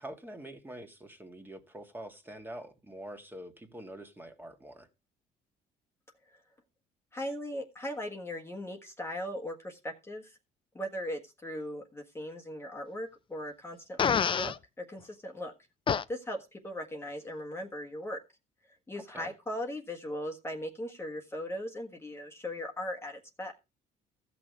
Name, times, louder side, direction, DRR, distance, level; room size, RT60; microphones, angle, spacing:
voice 1, 0.0-4.9 19.1-19.3, right 1 dB, 10° right, 1.8 m, -45 dB
voice 2, 7.1-10.4 10.7-14.0 14.3-15.5 16.1-18.2 18.9-23.5, equal, 15° left, 1.5 m, -38 dB
Fart, 14.0-14.6 15.9-16.0, left 7 dB, 30° left, 0.5 m, -26 dB
15.0 x 6.1 x 4.6 m
cardioid pair, 110°, 17 cm